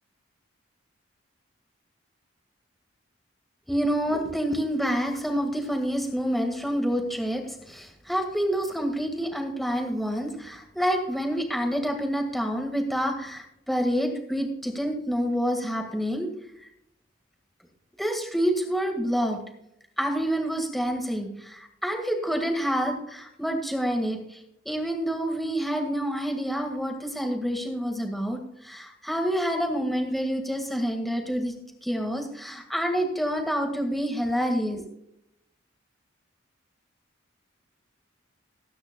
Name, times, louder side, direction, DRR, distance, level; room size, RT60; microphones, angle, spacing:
voice 1, 3.7-16.3 16.6-16.7 18.0-19.4 20.0-31.5 31.8-34.9, equal, ahead, 3 dB, 1.7 m, -28 dB
19.5 x 9.8 x 2.3 m, 0.78 s
head